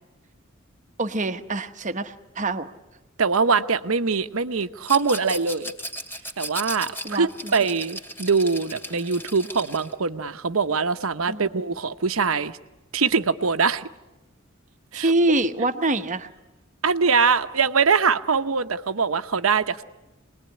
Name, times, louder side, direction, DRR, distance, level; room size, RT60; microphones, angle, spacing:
voice 1, 1.0-2.7 7.0-7.5 11.3-11.5 14.9-16.3, right 2 dB, 35° right, 9 dB, 1.1 m, -25 dB
voice 2, 3.2-5.7 6.4-12.6 12.9-13.9 14.9-15.1 16.8-19.8, right 5 dB, 80° right, 10 dB, 0.9 m, -23 dB
Rattle, 4.8-9.9, equal, 10° left, 2.5 m, -36 dB
27.0 x 20.5 x 9.8 m, 1.0 s
head